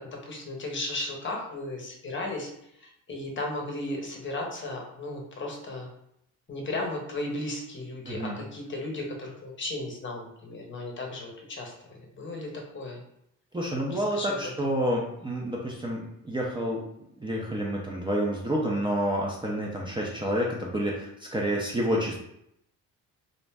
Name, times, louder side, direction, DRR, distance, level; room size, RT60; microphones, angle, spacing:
voice 1, 0.0-2.5 2.8-5.9 6.5-13.0 13.9-14.4, left 2 dB, 35° left, 0 dB, 0.8 m, -35 dB
voice 2, 13.5-16.8 17.2-22.2, equal, 15° right, -3 dB, 0.5 m, -29 dB
2.5 x 2.1 x 3.3 m, 0.77 s
supercardioid pair, 85°, 35 cm